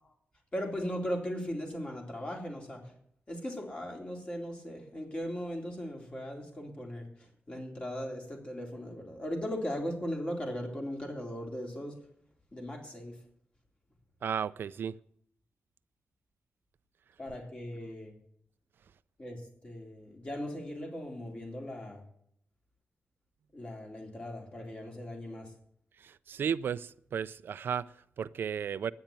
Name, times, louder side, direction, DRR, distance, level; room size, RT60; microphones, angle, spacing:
voice 1, 0.5-2.8 3.3-12.0 12.5-13.2 17.2-18.2 19.2-22.0 23.5-25.5, equal, 30° left, 3.7 m, -38 dB
voice 2, 14.2-14.9 26.0-28.9, right 7 dB, 80° right, 0.5 m, -34 dB
10.5 x 9.6 x 8.9 m
wide cardioid pair, 105°, 4 cm